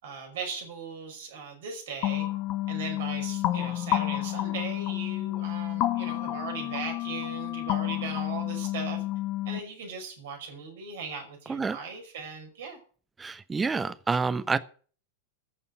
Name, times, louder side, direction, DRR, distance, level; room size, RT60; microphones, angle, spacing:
voice 1, 0.0-2.3 2.7-9.0 9.5-12.8, right 5 dB, 55° right, 3 dB, 5.4 m, -38 dB
sound 1, 2.0-9.6, left 15 dB, 40° left, 1.4 m, -30 dB
voice 2, 13.2-14.6, right 4 dB, 15° right, 15 dB, 0.9 m, -28 dB
14.5 x 7.0 x 8.4 m, 0.42 s
figure-of-eight pair, 90°, 0 cm